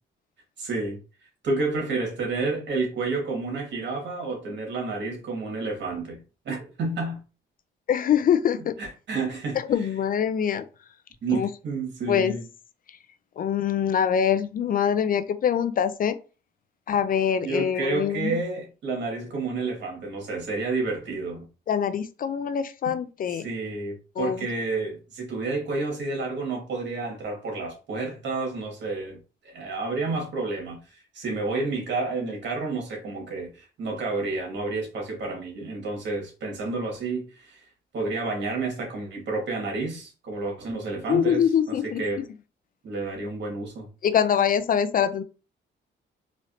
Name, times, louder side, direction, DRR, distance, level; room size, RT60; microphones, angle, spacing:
voice 1, 0.6-1.0 1.4-6.2 6.5-7.2 8.8-9.6 11.2-12.4 17.4-21.5 23.4-29.2 29.4-37.6 37.9-41.5 41.8-42.2 42.8-43.9, right 3 dB, 65° right, 1.9 m, -30 dB
voice 2, 7.9-8.7 9.7-10.6 11.3-11.5 12.1-12.3 12.9-13.0 13.4-16.2 16.9-18.4 21.7-23.5 24.2-24.5 41.1-42.2 44.0-45.2, left 8 dB, 45° left, 0.4 m, -24 dB
4.0 x 3.1 x 2.7 m
cardioid pair, 90°, 20 cm